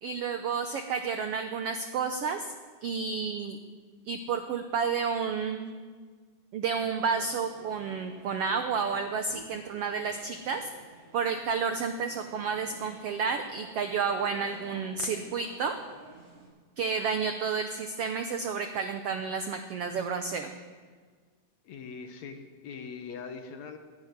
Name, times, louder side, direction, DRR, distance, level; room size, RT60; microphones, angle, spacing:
voice 1, 0.0-2.5 2.8-3.6 4.0-5.7 6.5-10.7 11.1-15.7 16.8-20.5, right 5 dB, 80° right, 7 dB, 1.3 m, -31 dB
sound 1, 6.9-16.5, right 2 dB, 35° right, 6.5 m, -51 dB
voice 2, 21.6-23.8, left 5 dB, 65° left, 7 dB, 2.1 m, -42 dB
12.0 x 11.0 x 9.4 m, 1.5 s
omnidirectional pair, 3.8 m